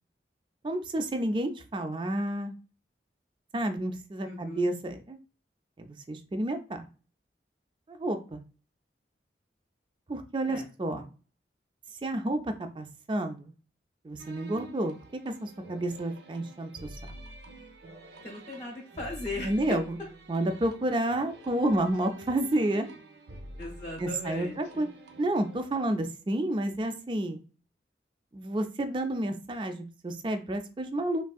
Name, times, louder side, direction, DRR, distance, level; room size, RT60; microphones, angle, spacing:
voice 1, 0.6-2.5 3.5-5.2 5.8-6.9 7.9-8.4 10.1-11.1 12.0-13.5 14.0-14.9 15.2-16.7 19.4-20.0 20.3-22.9 24.0-24.9 25.2-27.4 28.3-31.2, right 1 dB, 25° right, 7 dB, 0.3 m, -30 dB
voice 2, 4.2-4.7 10.5-10.6 18.2-19.5 23.6-24.9, left 2 dB, 30° left, -2 dB, 0.7 m, -38 dB
sound 1, 14.2-25.7, right 1 dB, 75° right, 0.6 m, -48 dB
3.5 x 2.6 x 2.3 m, 0.36 s
head